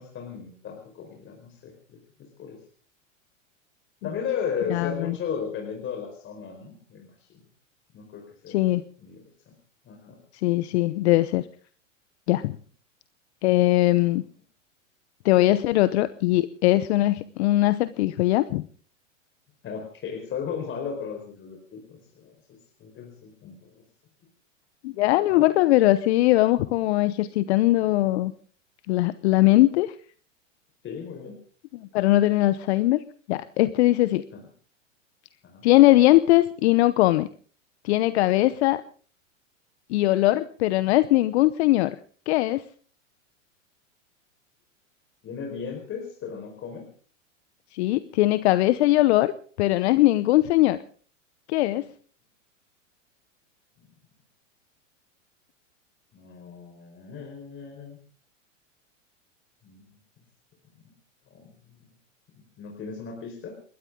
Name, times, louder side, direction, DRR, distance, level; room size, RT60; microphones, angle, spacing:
voice 1, 0.0-2.6 4.0-7.4 7.9-8.7 9.0-9.5 9.9-10.2 19.6-23.8 25.3-25.5 30.8-31.3 34.3-34.4 35.4-35.6 45.2-46.9 53.8-53.9 56.1-58.0 59.6-59.9 61.3-61.5 62.3-63.6, left 6 dB, 30° left, 2 dB, 4.8 m, -36 dB
voice 2, 4.7-5.2 8.5-8.8 10.4-11.4 12.3-12.6 13.4-14.2 15.2-18.7 24.8-28.3 28.9-29.9 31.9-33.0 33.3-34.3 35.6-37.3 37.8-38.8 39.9-42.0 42.3-42.6 47.7-49.3 49.6-50.8 51.5-51.9, left 17 dB, 55° left, 14 dB, 0.9 m, -20 dB
29.5 x 13.0 x 3.7 m, 0.43 s
hypercardioid pair, 110°, 39 cm